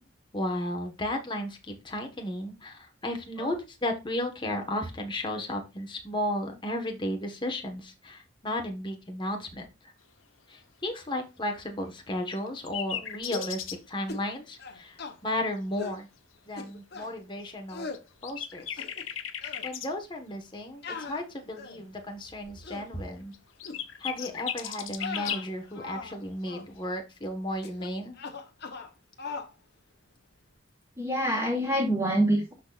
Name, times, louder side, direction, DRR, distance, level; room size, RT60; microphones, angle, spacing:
voice 1, 0.3-9.7 10.5-15.0 15.2-16.1 16.5-17.9 18.2-18.7 19.6-20.8 21.1-23.3 24.0-28.1, left 1 dB, 25° left, 3 dB, 1.4 m, -34 dB
sound 1, 12.3-13.8 17.9-18.0 18.2-19.9 23.3-25.5, left 9 dB, 90° left, 1.0 m, -36 dB
sound 2, 13.2-13.6 14.1-14.3 14.6-15.2 15.8-16.0 16.6-17.1 17.7-18.0 18.6-19.1 19.4-19.7 20.8-21.9 22.4-22.9 23.6-23.8 24.2-24.4 24.9-26.2 26.4-26.7 27.6-27.9 28.1-28.9 29.2-29.5, left 4 dB, 55° left, 1.1 m, -40 dB
voice 2, 31.0-32.5, right 1 dB, 15° right, -3 dB, 2.5 m, -26 dB
12.5 x 4.2 x 2.5 m, 0.26 s
head